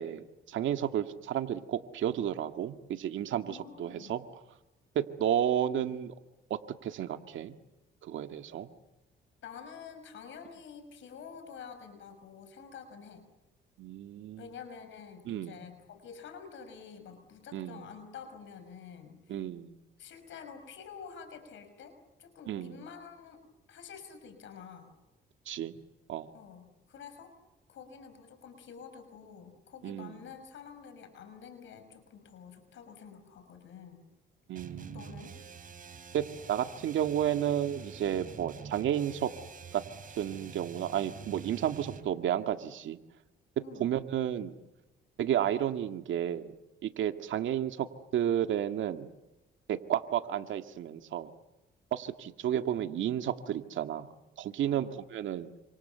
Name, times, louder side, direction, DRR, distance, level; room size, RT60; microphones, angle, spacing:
voice 1, 0.0-4.2 5.0-6.2 6.5-7.5 8.0-8.7 13.8-14.5 15.3-15.6 17.5-17.9 19.3-19.8 22.5-22.8 25.5-25.7 26.1-26.3 29.8-30.2 34.5-35.1 36.1-39.3 39.7-39.8 40.2-43.0 43.8-44.6 45.2-46.5 46.8-47.9 48.1-49.1 49.7-51.3 51.9-54.1 54.4-54.9 55.1-55.5, right 10 dB, 75° right, 7 dB, 2.0 m, -32 dB
voice 2, 3.5-4.2 9.4-13.3 14.4-19.4 20.0-23.4 23.7-24.9 26.3-27.3 27.7-34.0 34.9-35.3 43.6-43.9 54.6-54.9, left 6 dB, 75° left, 7 dB, 5.8 m, -48 dB
sound 1, 34.5-42.2, right 6 dB, 45° right, 4.0 m, -47 dB
29.5 x 26.5 x 7.0 m, 1.0 s
cardioid pair, 90°, 20 cm